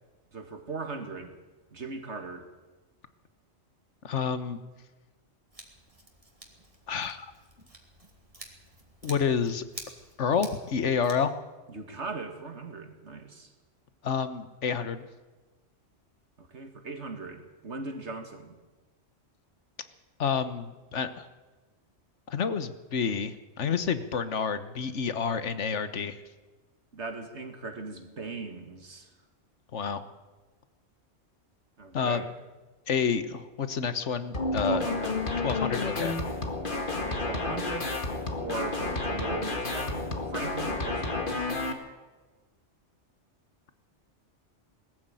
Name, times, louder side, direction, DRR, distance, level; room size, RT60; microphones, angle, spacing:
voice 1, 0.3-1.4 1.7-2.5 11.7-13.5 16.4-18.6 26.9-29.1 31.8-32.3 34.6-35.2 37.0-37.9 38.4-41.6, right 3 dB, 70° right, 6 dB, 2.5 m, -39 dB
voice 2, 4.0-4.6 6.9-7.3 9.0-9.6 10.2-11.3 14.0-15.1 20.2-21.3 22.3-26.2 29.7-30.0 31.9-32.2 32.9-34.9 35.4-36.1, left 6 dB, 75° left, 12 dB, 1.5 m, -29 dB
Scissors, 5.5-11.2, right 1 dB, 30° right, 2.8 m, -49 dB
sound 1, 34.3-41.7, left 2 dB, 45° left, 2.0 m, -31 dB
20.0 x 14.0 x 9.1 m, 1.2 s
omnidirectional pair, 1.2 m